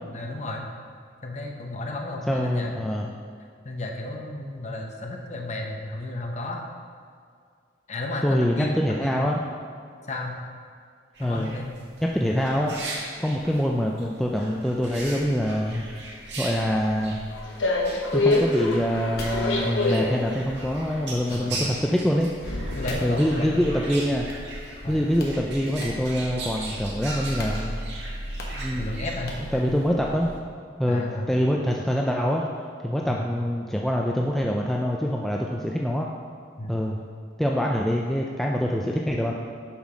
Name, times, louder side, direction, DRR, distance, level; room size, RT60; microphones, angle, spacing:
voice 1, 0.1-0.7 1.2-2.9 3.6-6.6 7.9-9.3 10.1-10.4 11.2-11.7 12.3-12.5 21.3-21.8 22.8-23.7 24.8-25.0 28.8-29.3 29.7-29.8 30.9-31.3 33.1-33.3 36.6-36.8, left 1 dB, 35° left, 1 dB, 0.8 m, -33 dB
voice 2, 2.3-3.1 8.2-9.4 11.2-11.5 12.0-12.7 13.2-15.9 16.4-17.3 18.1-22.3 23.0-24.3 24.9-27.8 28.5-28.9 29.5-30.3 30.8-32.5 32.8-36.1 36.7-37.0 37.4-39.3, equal, ahead, -1 dB, 0.3 m, -25 dB
sound 1, 11.1-29.9, right 2 dB, 65° right, 1.5 m, -39 dB
sound 2, 14.9-30.4, left 2 dB, 75° left, 0.9 m, -31 dB
sound 3, 18.4-23.8 24.3-24.9 25.1-25.4 25.8-26.2 26.6-27.0 27.4-27.6 27.8-27.9 28.4-28.7 29.3-29.5, left 1 dB, 50° left, 1.2 m, -43 dB
7.1 x 5.8 x 4.9 m, 2.2 s
head